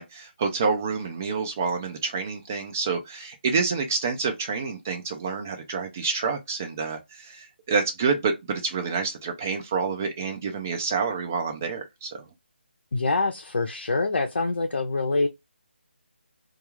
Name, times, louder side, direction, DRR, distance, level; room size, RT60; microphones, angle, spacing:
voice 1, 0.0-12.1, right 5 dB, 15° right, 0.3 m, -28 dB
voice 2, 12.9-15.3, left 3 dB, 70° left, 0.6 m, -25 dB
2.3 x 2.2 x 3.0 m
hypercardioid pair, 175°, 6 cm